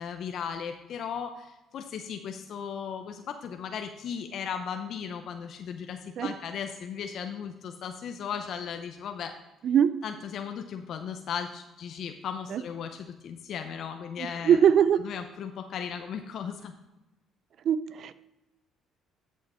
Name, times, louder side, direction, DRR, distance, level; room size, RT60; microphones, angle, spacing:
voice 1, 0.0-9.3 10.0-14.7 15.0-16.7, left 7 dB, 65° left, 6 dB, 0.7 m, -36 dB
voice 2, 9.6-10.0 12.5-12.6 14.2-15.0 17.7-18.1, right 8 dB, 60° right, 15 dB, 0.5 m, -22 dB
12.5 x 5.6 x 4.3 m, 1.0 s
supercardioid pair, 65°, 0 cm